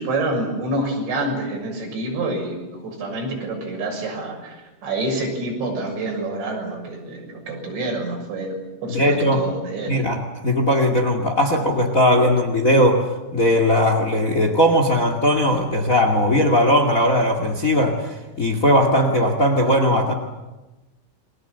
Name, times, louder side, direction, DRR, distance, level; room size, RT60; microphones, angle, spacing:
voice 1, 0.0-10.0, right 2 dB, 60° right, 1 dB, 8.9 m, -27 dB
voice 2, 8.9-9.4 9.9-20.1, equal, 75° left, 5 dB, 0.7 m, -18 dB
29.5 x 23.5 x 8.0 m, 1.1 s
omnidirectional pair, 5.8 m